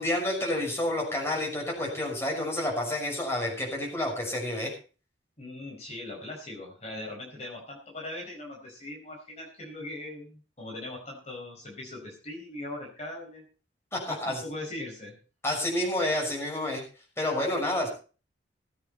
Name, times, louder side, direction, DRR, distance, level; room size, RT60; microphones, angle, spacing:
voice 1, 0.0-4.7 13.9-14.4 15.4-16.8 17.2-17.9, left 1 dB, 15° left, -1 dB, 6.0 m, -29 dB
voice 2, 5.4-13.4 14.1-15.2, left 1 dB, 35° left, -1 dB, 5.0 m, -40 dB
20.0 x 8.8 x 4.4 m, 0.36 s
head